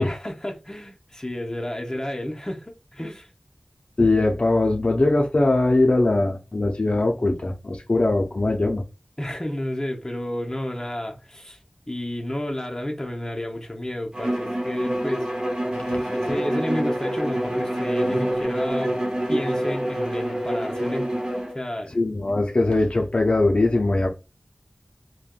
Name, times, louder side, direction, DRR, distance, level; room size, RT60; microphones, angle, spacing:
voice 1, 0.0-3.3 9.2-11.6 11.9-15.3 16.1-19.0 19.3-21.1 21.5-22.0, left 1 dB, 20° left, 0.7 m, -31 dB
voice 2, 4.0-8.8 15.9-16.0 21.9-24.1, left 2 dB, 50° left, 0.5 m, -21 dB
Bowed string instrument, 14.1-21.6, right 1 dB, 30° right, 0.7 m, -26 dB
3.3 x 2.1 x 2.3 m
wide cardioid pair, 45°, 2 cm